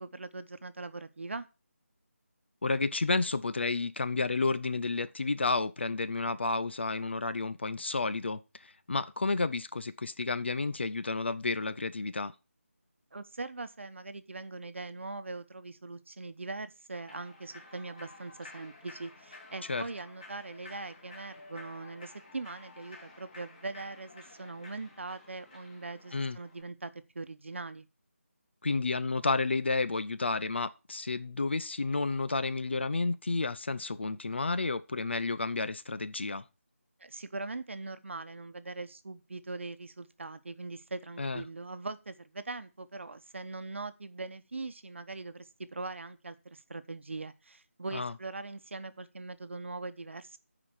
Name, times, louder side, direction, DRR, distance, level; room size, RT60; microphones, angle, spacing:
voice 1, 0.0-1.5 13.1-27.9 37.0-50.4, right 3 dB, 60° right, 1.0 m, -41 dB
voice 2, 2.6-12.3 19.7-19.8 26.1-26.4 28.6-36.4 41.2-41.4 47.9-48.1, left 3 dB, 50° left, 0.6 m, -31 dB
Human voice / Clapping / Cheering, 16.9-26.6, left 2 dB, 30° left, 3.0 m, -52 dB
9.8 x 5.0 x 7.2 m
figure-of-eight pair, 170°, 8 cm